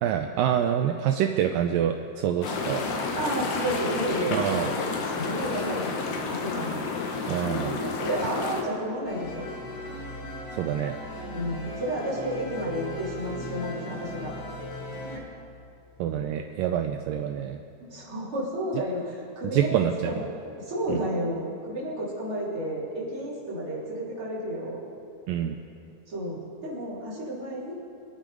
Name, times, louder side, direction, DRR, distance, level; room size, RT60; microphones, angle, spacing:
voice 1, 0.0-2.8 4.3-4.7 7.3-7.7 10.5-11.0 16.0-17.6 19.5-20.1 20.9-21.0 25.3-25.6, right 10 dB, 85° right, 5 dB, 2.0 m, -26 dB
sound 1, 2.4-8.6, left 4 dB, 65° left, 2.7 m, -30 dB
voice 2, 3.1-4.4 5.1-6.8 7.4-9.5 11.3-14.3 15.1-15.2 17.8-24.8 26.1-27.7, equal, 35° right, -8 dB, 4.0 m, -31 dB
sound 2, 9.0-15.2, left 1 dB, 85° left, 3.8 m, -38 dB
25.5 x 9.1 x 5.0 m, 2.6 s
omnidirectional pair, 4.5 m